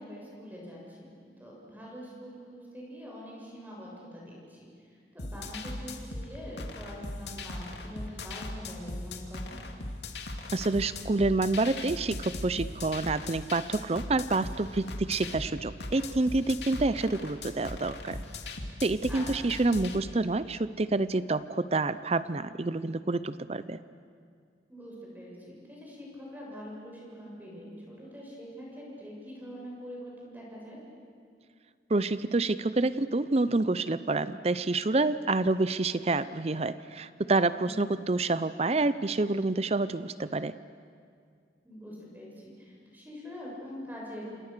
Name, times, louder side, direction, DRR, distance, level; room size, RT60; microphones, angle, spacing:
voice 1, 0.0-4.7 5.1-9.6 19.1-19.2 24.7-30.8 37.6-38.0 41.6-44.3, equal, 10° right, -4 dB, 7.0 m, -44 dB
sound 1, 5.2-20.0, left 2 dB, 75° left, 2.5 m, -39 dB
voice 2, 10.5-18.2 18.8-23.8 31.9-40.5, right 2 dB, 35° right, 14 dB, 0.6 m, -28 dB
29.0 x 27.0 x 6.7 m, 2.2 s
head